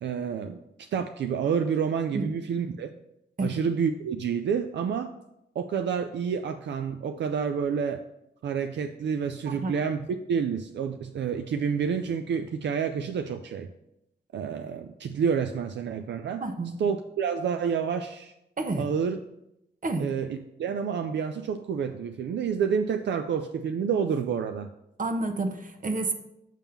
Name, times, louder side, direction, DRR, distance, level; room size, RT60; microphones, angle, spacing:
voice 1, 0.0-2.9 3.4-5.1 5.6-8.0 8.4-13.7 14.3-16.4 16.8-18.3 18.8-19.2 20.0-24.7, right 7 dB, 75° right, 7 dB, 0.4 m, -29 dB
voice 2, 9.5-9.8 16.4-16.7 18.6-18.9 19.8-20.1 25.0-26.1, right 2 dB, 45° right, 6 dB, 1.0 m, -29 dB
7.4 x 3.6 x 5.7 m, 0.83 s
cardioid pair, 65°, 18 cm